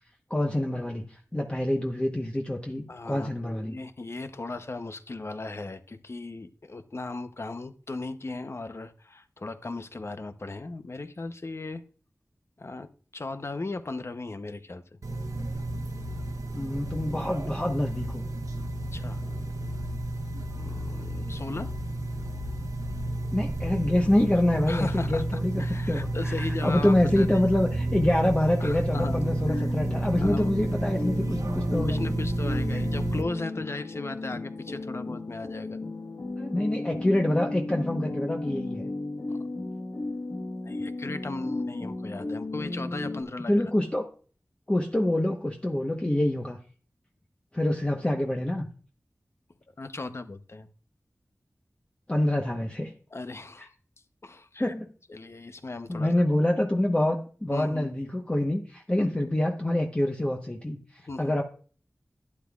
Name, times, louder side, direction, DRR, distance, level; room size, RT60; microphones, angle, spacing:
voice 1, 0.3-3.8 16.5-18.2 23.3-32.0 32.7-32.8 36.4-38.8 43.5-44.0 44.7-46.6 47.5-48.7 52.1-52.9 54.6-54.9 55.9-61.4, left 1 dB, 20° left, 1 dB, 1.0 m, -26 dB
voice 2, 2.9-11.8 12.6-14.8 18.9-19.2 20.6-21.7 24.7-25.2 25.6-27.5 28.6-29.7 30.2-30.6 31.9-35.8 40.6-43.5 49.8-50.7 53.1-53.7 54.2-54.7 55.1-56.2 57.5-57.9 59.0-59.1 61.1-61.4, left 3 dB, 50° left, 10 dB, 0.8 m, -37 dB
sound 1, 15.0-33.2, right 1 dB, 80° right, 1.1 m, -31 dB
sound 2, 28.9-43.2, left 2 dB, 70° left, 1.4 m, -34 dB
11.5 x 9.6 x 2.4 m, 0.41 s
wide cardioid pair, 50°, 6 cm